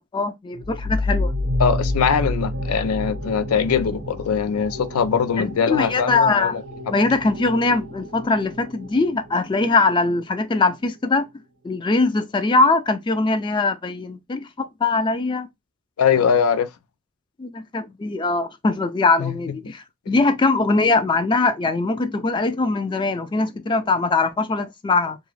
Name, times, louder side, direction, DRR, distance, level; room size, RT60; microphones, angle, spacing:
voice 1, 0.1-1.3 5.4-6.6 6.9-11.3 11.6-15.5 17.4-25.2, left 3 dB, 20° left, 0.3 m, -21 dB
sound 1, 0.5-9.9, left 1 dB, 75° right, 0.6 m, -29 dB
voice 2, 1.6-6.6 16.0-16.7 19.2-19.4, left 6 dB, 90° left, 0.4 m, -21 dB
2.4 x 2.3 x 3.0 m
head